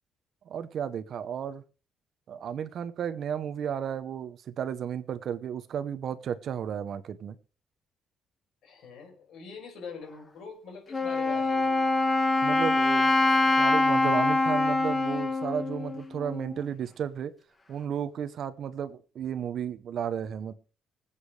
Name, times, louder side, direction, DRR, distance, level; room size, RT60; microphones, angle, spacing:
voice 1, 0.4-1.6 2.3-7.4 12.4-13.2 13.5-17.4 17.7-20.5, right 8 dB, 50° right, 13 dB, 0.8 m, -33 dB
voice 2, 8.6-11.9, left 5 dB, 60° left, 2 dB, 5.4 m, -44 dB
Wind instrument woodwind instrument, 10.9-16.6, left 2 dB, 20° left, 1.3 m, -25 dB
24.5 x 8.3 x 3.3 m, 0.37 s
cardioid pair, 170°, 0 cm